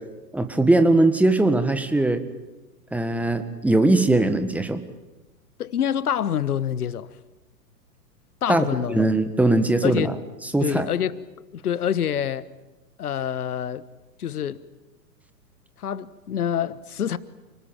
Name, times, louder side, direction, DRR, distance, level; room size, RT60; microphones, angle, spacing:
voice 1, 0.3-2.2 2.9-4.8 8.5-8.7 8.9-10.1 10.4-10.8, right 2 dB, 5° right, 1.5 m, -20 dB
voice 2, 5.6-7.1 8.4-9.1 9.8-10.1 10.6-11.2 11.5-12.4 13.0-13.8 14.2-14.6 15.8-17.2, left 9 dB, 65° left, 1.4 m, -26 dB
29.0 x 19.5 x 9.0 m
figure-of-eight pair, 110°, 50 cm